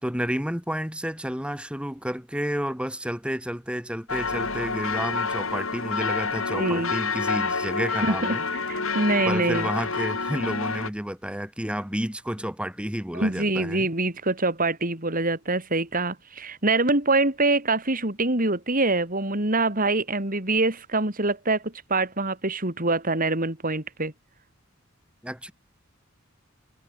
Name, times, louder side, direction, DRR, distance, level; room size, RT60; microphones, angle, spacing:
voice 1, 0.0-8.5 9.3-13.9 25.2-25.5, equal, 5° right, 6.3 m, -31 dB
sound 1, 4.1-10.9, left 4 dB, 80° left, 7.1 m, -28 dB
voice 2, 6.5-6.9 8.0-9.7 13.1-24.1, right 2 dB, 40° right, 4.9 m, -25 dB
head